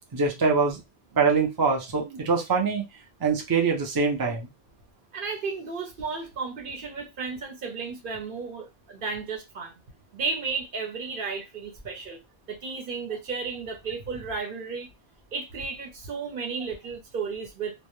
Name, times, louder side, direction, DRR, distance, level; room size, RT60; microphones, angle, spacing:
voice 1, 0.1-0.8 1.2-2.9 3.2-4.5, right 4 dB, 30° right, 0.4 m, -24 dB
voice 2, 5.1-9.8 10.1-12.2 12.5-14.9 15.3-17.7, right 4 dB, 60° right, 0.8 m, -33 dB
2.2 x 2.0 x 2.9 m
omnidirectional pair, 1.1 m